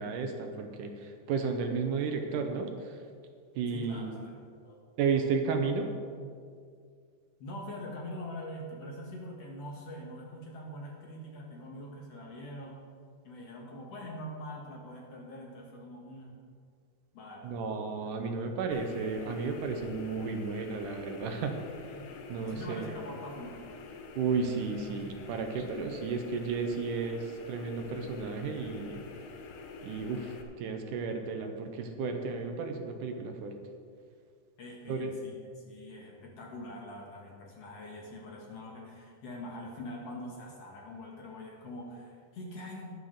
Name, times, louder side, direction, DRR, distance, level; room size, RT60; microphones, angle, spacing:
voice 1, 0.0-3.0 3.6-4.1 5.0-5.9 17.4-21.6 22.3-22.9 24.2-29.0 29.8-33.6 34.9-35.1, right 5 dB, 75° right, 5 dB, 2.2 m, -33 dB
voice 2, 3.7-4.4 4.6-4.8 7.4-12.8 13.2-16.4 17.1-17.5 22.5-23.6 34.6-42.9, left 1 dB, 55° left, -1 dB, 2.1 m, -43 dB
sound 1, 18.7-30.4, left 4 dB, 85° left, 2.7 m, -47 dB
11.0 x 7.9 x 6.5 m, 2.1 s
omnidirectional pair, 3.9 m